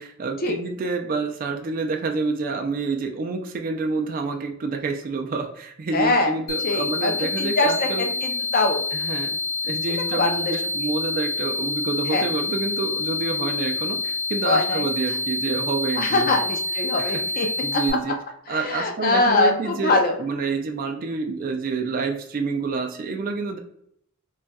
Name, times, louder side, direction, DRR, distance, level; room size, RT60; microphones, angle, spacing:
voice 1, 0.0-8.1 8.9-9.4 9.6-16.4 17.0-18.2 18.5-23.6, right 4 dB, 40° right, 4 dB, 0.3 m, -28 dB
voice 2, 5.9-6.3 6.6-8.8 10.1-10.5 12.1-12.3 14.5-14.9 16.0-17.5 17.7-17.8 18.5-20.1, left 2 dB, 40° left, 3 dB, 0.4 m, -23 dB
sound 1, 6.5-17.9, left 3 dB, 70° left, 0.9 m, -27 dB
2.3 x 2.2 x 3.9 m, 0.69 s
head